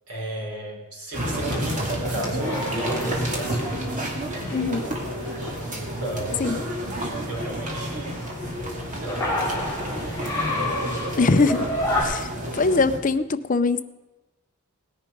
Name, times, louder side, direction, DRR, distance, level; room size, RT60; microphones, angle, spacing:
voice 1, 0.1-4.0 4.3-4.7 5.8-6.6 7.0-8.3 9.0-10.4, right 1 dB, 90° right, 0 dB, 4.4 m, -36 dB
sound 1, 1.1-13.0, right 1 dB, 35° right, 2.5 m, -30 dB
sound 2, 1.2-12.0, left 1 dB, 15° left, 5.3 m, -32 dB
voice 2, 4.5-4.8 6.4-6.6 11.2-11.7 12.0-13.8, left 3 dB, 35° left, 12 dB, 0.6 m, -22 dB
18.5 x 10.5 x 5.3 m, 1.1 s
head